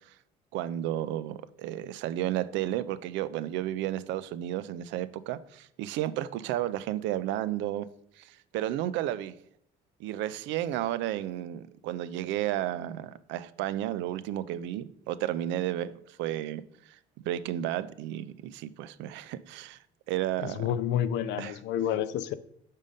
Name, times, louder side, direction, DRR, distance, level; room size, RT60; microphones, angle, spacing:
voice 1, 0.5-7.9 8.2-9.4 10.0-15.9 16.2-16.6 17.2-19.8 20.1-20.7 21.4-21.6, right 13 dB, 75° right, 0.4 m, -32 dB
voice 2, 20.6-22.3, left 10 dB, 70° left, 0.5 m, -29 dB
5.3 x 3.6 x 5.3 m
cardioid pair, 115°, 19 cm